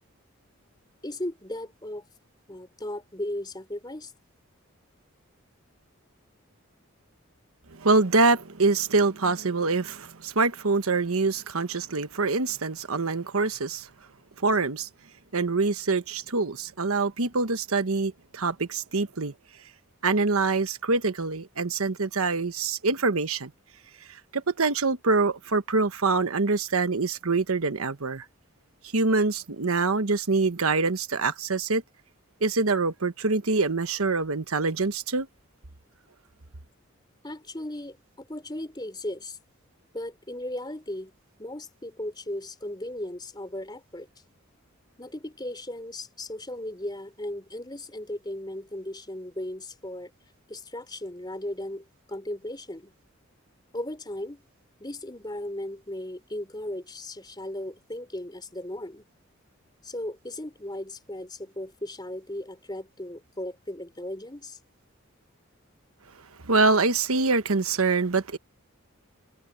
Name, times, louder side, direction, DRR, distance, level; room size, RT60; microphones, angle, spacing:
voice 1, 1.0-2.0 2.5-4.1 37.2-39.4 39.9-41.1 41.4-44.1 45.0-50.1 50.5-52.9 53.7-54.4 54.8-59.0 59.8-64.6, left 1 dB, 20° left, 4.0 m, -36 dB
voice 2, 7.7-13.9 14.4-14.9 15.3-19.3 20.0-23.5 24.3-28.2 28.9-31.8 32.4-35.3 66.4-68.4, right 3 dB, 90° right, 1.2 m, -25 dB
head